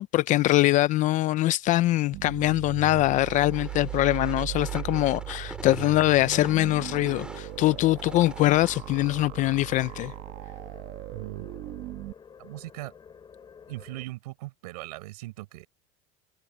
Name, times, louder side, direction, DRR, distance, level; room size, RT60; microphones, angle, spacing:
voice 1, 0.0-10.1, left 17 dB, 40° left, 0.5 m, -23 dB
sound 1, 2.1-12.1, right 17 dB, 50° right, 1.0 m, -38 dB
sound 2, 2.7-14.1, left 6 dB, 25° left, 7.2 m, -51 dB
sound 3, 3.2-9.3, right 1 dB, 5° right, 5.2 m, -45 dB
voice 2, 11.1-11.5 12.4-12.9 13.7-15.7, right 19 dB, 85° right, 7.2 m, -39 dB
supercardioid pair, 130°, 19 cm